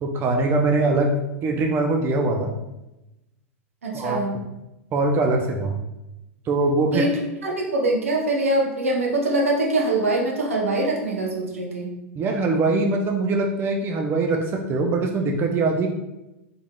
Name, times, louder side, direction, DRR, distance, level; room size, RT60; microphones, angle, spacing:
voice 1, 0.0-1.1 1.4-2.5 3.9-4.4 4.9-5.8 6.5-7.1 12.2-15.9, right 3 dB, 30° right, 2 dB, 0.5 m, -22 dB
voice 2, 3.8-4.3 6.9-7.1 7.4-11.9, right 2 dB, 80° right, -1 dB, 0.8 m, -23 dB
3.6 x 3.5 x 2.3 m, 0.94 s
hypercardioid pair, 95°, 7 cm